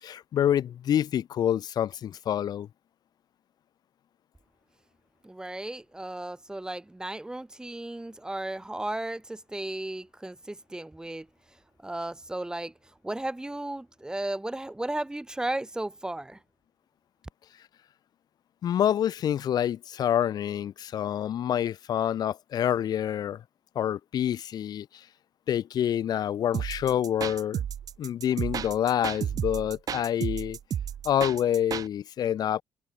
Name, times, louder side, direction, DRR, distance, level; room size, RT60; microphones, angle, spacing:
voice 1, 0.0-2.7 18.6-23.4 23.7-25.0 25.5-27.6 28.0-30.6 31.0-32.6, left 10 dB, 60° left, 1.3 m, -27 dB
voice 2, 5.2-11.3 11.8-12.7 13.0-16.4, right 1 dB, 10° right, 1.8 m, -35 dB
sound 1, 26.5-31.9, right 9 dB, 50° right, 0.7 m, -32 dB
open air
cardioid pair, 105°, 8 cm